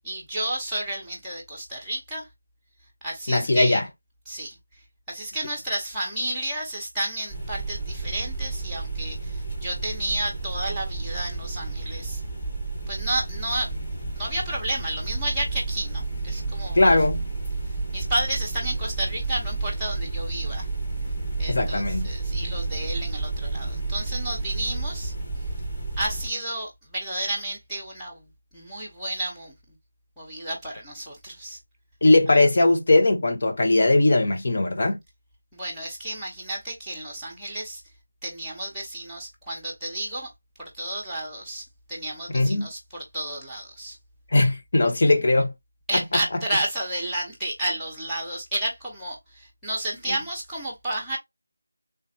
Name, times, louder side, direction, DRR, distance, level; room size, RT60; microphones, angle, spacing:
voice 1, 0.0-2.3 3.0-3.8 4.3-4.6 5.1-12.2 12.9-13.7 14.2-17.0 17.9-20.7 21.4-25.1 26.0-28.2 28.5-29.5 30.2-31.6 32.3-32.5 35.5-37.8 38.2-40.3 40.6-44.0 45.9-51.2, right 1 dB, ahead, 1.0 m, -31 dB
voice 2, 3.3-3.8 16.7-17.2 21.5-22.1 32.0-35.0 42.3-42.7 44.3-45.5 45.9-46.0, left 2 dB, 40° left, 0.8 m, -19 dB
sound 1, 7.3-26.3, right 3 dB, 25° left, 1.3 m, -31 dB
3.4 x 2.9 x 2.8 m
figure-of-eight pair, 165°, 0 cm